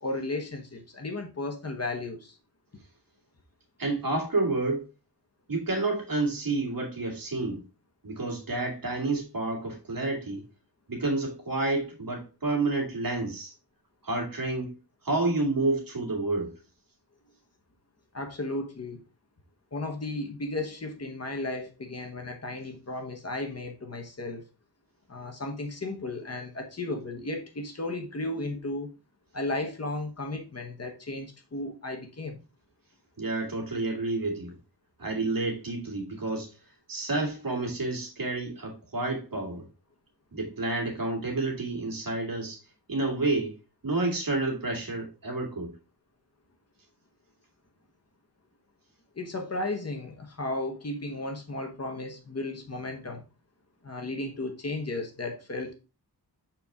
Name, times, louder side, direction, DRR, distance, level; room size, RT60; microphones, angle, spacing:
voice 1, 0.0-2.4 18.1-19.0 19.7-24.4 25.1-28.9 29.3-32.4 49.1-53.2 53.8-55.7, left 2 dB, 40° left, 1.1 m, -34 dB
voice 2, 3.8-4.9 5.5-7.6 8.0-10.4 10.9-13.5 14.0-14.7 15.0-16.5 33.2-34.5 35.0-36.6 36.9-39.7 40.3-42.6 42.9-43.6 43.8-45.7, right 2 dB, 55° right, 2.2 m, -29 dB
6.6 x 4.5 x 3.6 m
wide cardioid pair, 120°, 40 cm